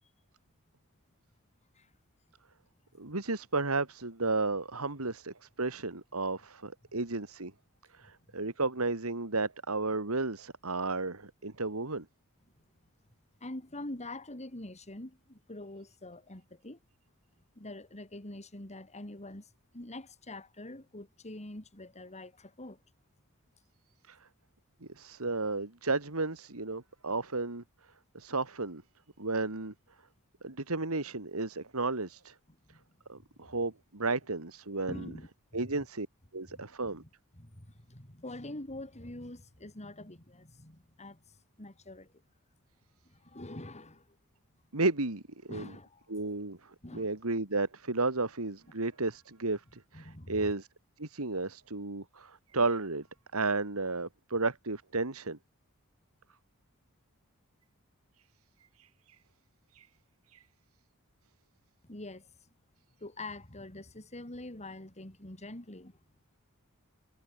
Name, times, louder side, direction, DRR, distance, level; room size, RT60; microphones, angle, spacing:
voice 1, 3.0-7.5 7.9-12.0 24.1-24.2 25.0-27.6 28.1-28.8 29.2-29.7 30.4-32.3 33.1-35.1 35.5-36.1 36.3-37.0 44.7-45.7 46.1-50.7 51.0-53.1 53.3-55.4 58.8-59.2 59.7-59.9 60.3-60.4, right 3 dB, 70° right, 2.4 m, -33 dB
voice 2, 13.4-16.8 17.6-22.8 32.5-32.9 33.1-33.3 34.9-35.6 36.5-37.1 37.4-41.2 41.6-42.1 43.1-44.1 45.5-46.1 46.8-47.1 49.9-50.5 61.8-62.3 63.0-66.0, left 1 dB, 30° left, 3.4 m, -45 dB
head